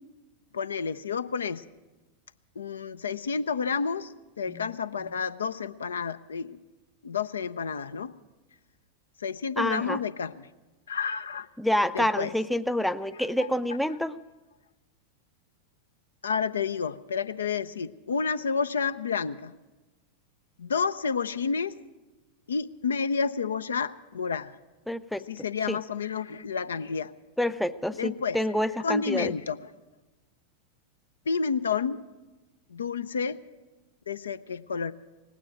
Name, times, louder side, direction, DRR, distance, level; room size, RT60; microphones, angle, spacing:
voice 1, 0.5-1.6 2.6-6.6 7.0-8.1 9.2-10.5 10.9-11.5 11.9-12.3 16.2-19.5 20.6-21.7 22.5-24.6 25.3-27.1 28.0-28.4 28.8-29.6 31.3-32.0 32.7-33.4 34.1-34.9, left 5 dB, 70° left, 13 dB, 0.5 m, -30 dB
voice 2, 9.6-10.0 11.6-14.1 24.9-25.3 25.7-25.8 27.4-29.3, left 1 dB, ahead, 12 dB, 0.4 m, -28 dB
18.0 x 9.2 x 8.8 m, 1.1 s
figure-of-eight pair, 90°, 0 cm